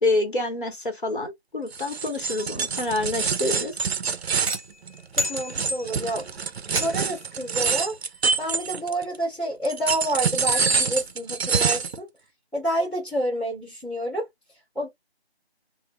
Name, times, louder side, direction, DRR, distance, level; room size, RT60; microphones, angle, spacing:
voice 1, 0.0-3.8, left 2 dB, 50° left, 1.0 m, -27 dB
sound 1, 1.7-9.2 9.6-12.0, right 5 dB, 70° right, 0.5 m, -26 dB
sound 2, 4.5-6.1 6.8-7.3, left 1 dB, 35° right, 0.8 m, -32 dB
voice 2, 5.3-6.3 6.7-8.0 8.4-12.1 12.5-14.3 14.7-14.9, right 1 dB, ahead, 0.6 m, -28 dB
2.3 x 2.0 x 2.8 m
figure-of-eight pair, 175°, 32 cm